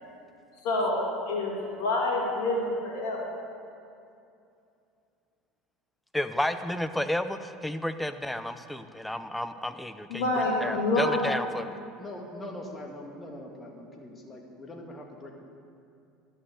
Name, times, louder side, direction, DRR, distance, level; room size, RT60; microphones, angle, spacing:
voice 1, 0.6-3.2 6.4-6.7 10.1-11.3, left 2 dB, 70° left, -3 dB, 2.4 m, -28 dB
voice 2, 6.1-10.2 10.6-11.8, left 1 dB, 5° left, 11 dB, 0.6 m, -31 dB
voice 3, 10.5-11.4 12.0-15.3, left 1 dB, 25° left, 1 dB, 2.0 m, -42 dB
11.0 x 6.3 x 7.8 m, 2.6 s
hypercardioid pair, 85°, 0 cm